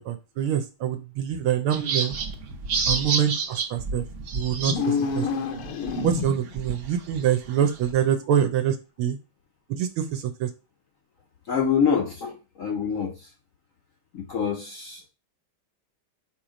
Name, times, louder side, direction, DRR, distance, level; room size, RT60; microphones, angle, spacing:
voice 1, 0.0-2.1 2.9-4.0 4.3-5.3 6.0-9.2 9.7-10.5, right 9 dB, 80° right, 6 dB, 1.5 m, -25 dB
sound 1, 1.7-4.8 5.1-5.2 5.6-7.9, right 5 dB, 55° right, 1.2 m, -29 dB
sound 2, 4.6-6.6, left 5 dB, 90° left, 1.8 m, -28 dB
voice 2, 11.5-13.1 14.1-15.1, left 7 dB, 60° left, 3 dB, 0.8 m, -26 dB
6.5 x 3.0 x 5.0 m, 0.30 s
omnidirectional pair, 2.3 m